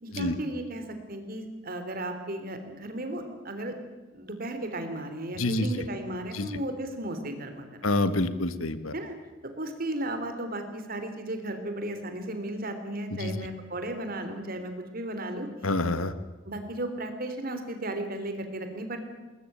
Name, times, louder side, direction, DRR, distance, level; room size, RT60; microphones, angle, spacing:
voice 1, 0.0-3.7 4.1-7.9 8.9-9.1 9.4-15.5 16.4-19.0, right 1 dB, 45° right, 7 dB, 3.4 m, -35 dB
voice 2, 5.4-5.8 6.3-6.5 7.8-8.9 13.1-13.3 15.6-16.1, left 2 dB, 90° left, 12 dB, 1.6 m, -27 dB
21.0 x 20.0 x 8.9 m, 1.2 s
head